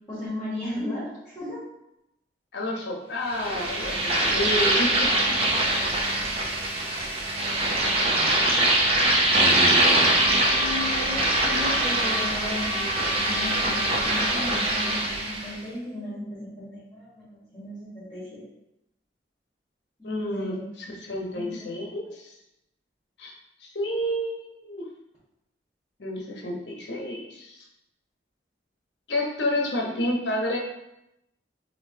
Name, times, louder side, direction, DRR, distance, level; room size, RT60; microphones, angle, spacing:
voice 1, 0.1-1.6 10.2-18.4 20.0-20.7 21.3-21.7, left 1 dB, 20° left, -9 dB, 1.2 m, -35 dB
voice 2, 2.5-5.3 20.0-22.4 23.2-23.3 23.6-24.8 26.0-27.7 29.1-30.6, left 1 dB, 75° left, -1 dB, 0.9 m, -30 dB
sound 1, 3.3-15.5, right 1 dB, 30° right, 0.5 m, -23 dB
Trumpet, 9.5-15.0, left 1 dB, 5° right, 1.2 m, -35 dB
5.2 x 2.9 x 2.7 m, 0.86 s
head